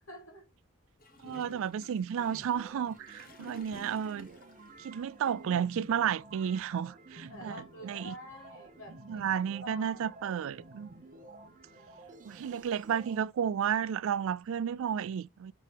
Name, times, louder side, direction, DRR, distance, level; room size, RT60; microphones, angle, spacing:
voice 1, 0.1-0.5 7.3-10.0 11.4-12.2, left 1 dB, 65° left, 4.3 m, -49 dB
Gurgling / Toilet flush, 1.0-4.7, left 2 dB, 45° left, 1.0 m, -54 dB
voice 2, 1.2-4.3 4.8-8.1 9.1-10.9 12.2-15.5, right 8 dB, 65° right, 0.3 m, -32 dB
sound 1, 2.2-13.2, right 2 dB, 40° right, 0.8 m, -51 dB
6.0 x 4.6 x 3.5 m
head